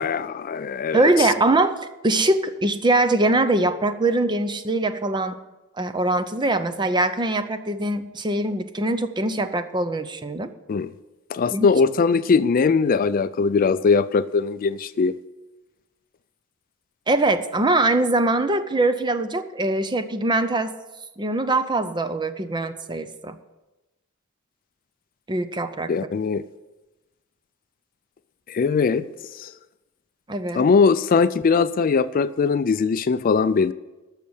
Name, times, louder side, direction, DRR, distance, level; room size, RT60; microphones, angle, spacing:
voice 1, 0.0-1.1 10.7-10.9 11.3-15.1 25.9-26.4 28.5-29.0 29.3-29.5 30.5-33.7, left 5 dB, 40° left, 14 dB, 0.3 m, -20 dB
voice 2, 0.9-5.4 5.8-10.5 11.5-11.7 17.1-20.7 21.2-23.4 25.3-25.9 30.3-30.6, right 2 dB, 20° right, 10 dB, 0.6 m, -22 dB
12.5 x 6.5 x 8.0 m, 1.1 s
head